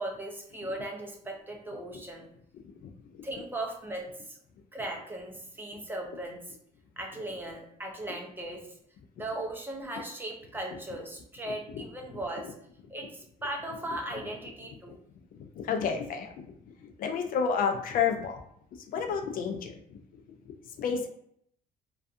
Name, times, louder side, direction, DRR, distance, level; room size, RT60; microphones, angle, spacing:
voice 1, 0.0-2.3 3.2-4.4 4.7-6.6 7.0-8.8 9.2-12.5 12.9-15.0, right 1 dB, 10° right, 1 dB, 0.5 m, -38 dB
voice 2, 2.8-3.2 15.4-18.4 18.9-20.0 20.8-21.1, left 6 dB, 55° left, 5 dB, 0.4 m, -31 dB
2.5 x 2.3 x 2.4 m, 0.70 s
cardioid pair, 110°, 17 cm